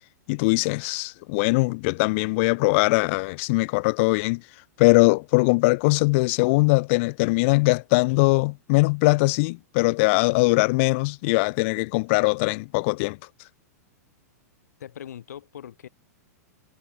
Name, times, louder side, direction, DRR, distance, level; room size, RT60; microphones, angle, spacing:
voice 1, 0.3-4.4 4.8-13.2, left 26 dB, 50° left, 0.3 m, -21 dB
voice 2, 14.8-15.9, left 10 dB, 75° left, 5.1 m, -40 dB
hypercardioid pair, 115°, 9 cm